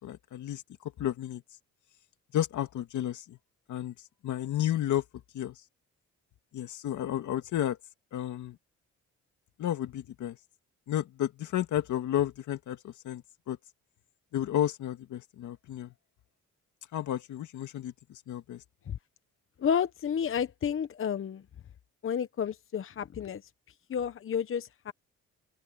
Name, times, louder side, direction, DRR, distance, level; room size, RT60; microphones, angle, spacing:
voice 1, 0.0-1.4 2.3-3.4 3.7-3.9 4.2-5.0 5.3-5.6 6.5-7.8 8.1-8.6 9.6-10.4 10.9-13.6 14.3-15.9 16.9-18.6, left 12 dB, 75° left, 2.3 m, -32 dB
voice 2, 19.6-21.4 22.0-23.5 23.9-24.9, left 8 dB, 45° left, 0.9 m, -31 dB
open air
cardioid pair, 90°, 30 cm